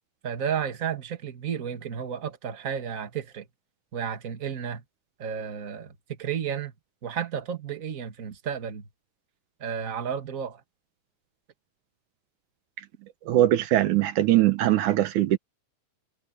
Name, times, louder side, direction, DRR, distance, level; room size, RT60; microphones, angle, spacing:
voice 1, 0.2-3.5 3.9-4.8 5.2-6.7 7.0-8.9 9.6-10.6, right 8 dB, 30° right, 1.7 m, -32 dB
voice 2, 13.3-15.4, right 14 dB, 75° right, 2.4 m, -21 dB
omnidirectional pair, 3.7 m